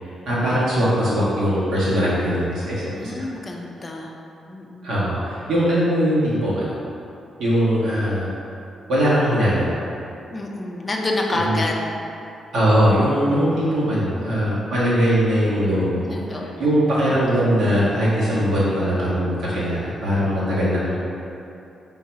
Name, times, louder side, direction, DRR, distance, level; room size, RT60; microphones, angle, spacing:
voice 1, 0.2-3.2 4.8-6.7 7.4-8.3 8.9-9.7 11.4-11.6 12.5-21.0, equal, 70° right, -9 dB, 1.4 m, -20 dB
voice 2, 2.9-4.2 4.5-4.9 10.3-11.9 13.2-13.7 16.0-16.7, left 2 dB, 20° left, 0 dB, 0.4 m, -28 dB
3.9 x 2.8 x 4.6 m, 2.8 s
wide cardioid pair, 150°, 0 cm